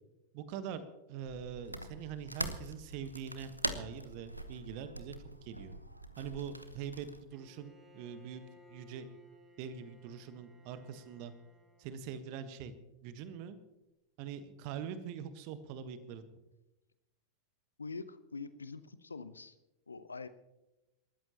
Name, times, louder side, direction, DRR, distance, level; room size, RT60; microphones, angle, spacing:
voice 1, 0.3-5.2 5.4-5.7 6.2-8.4 8.7-9.1 9.6-11.3 11.8-12.7 13.0-13.6 14.2-16.2, right 8 dB, 45° right, 11 dB, 1.3 m, -43 dB
sound 1, 1.2-7.2, right 1 dB, 85° right, 1.0 m, -43 dB
Bowed string instrument, 7.3-12.1, equal, 15° right, 4.5 m, -61 dB
voice 2, 17.8-19.6 19.9-20.3, left 4 dB, 75° left, 14 dB, 0.8 m, -44 dB
27.5 x 13.5 x 2.9 m, 0.99 s
figure-of-eight pair, 90°, 0 cm